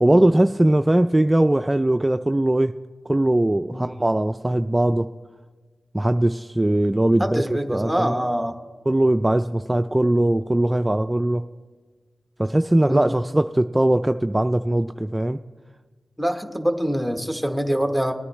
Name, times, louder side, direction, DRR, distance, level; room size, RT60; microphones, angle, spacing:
voice 1, 0.0-2.7 3.1-5.1 5.9-7.4 7.7-8.2 8.9-11.4 12.4-15.4, right 1 dB, 20° right, 9 dB, 0.4 m, -20 dB
voice 2, 7.2-8.6 12.8-13.1 16.2-18.1, equal, ahead, 6 dB, 1.2 m, -25 dB
19.5 x 9.7 x 3.2 m, 1.4 s
cardioid pair, 45°, 0 cm